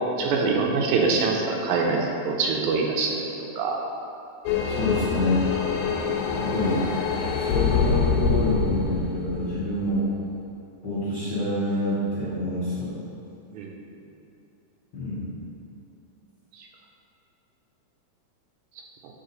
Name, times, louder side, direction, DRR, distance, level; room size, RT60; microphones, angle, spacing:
voice 1, 0.2-3.8 13.6-13.7, right 4 dB, 80° right, 0 dB, 2.0 m, -24 dB
sound 1, 4.5-10.2, left 5 dB, 90° left, 2.1 m, -25 dB
voice 2, 4.7-5.5 6.3-6.9 7.4-10.1 10.8-12.9 14.9-15.2, left 1 dB, 55° left, -11 dB, 1.3 m, -27 dB
8.1 x 3.7 x 3.9 m, 2.8 s
omnidirectional pair, 3.5 m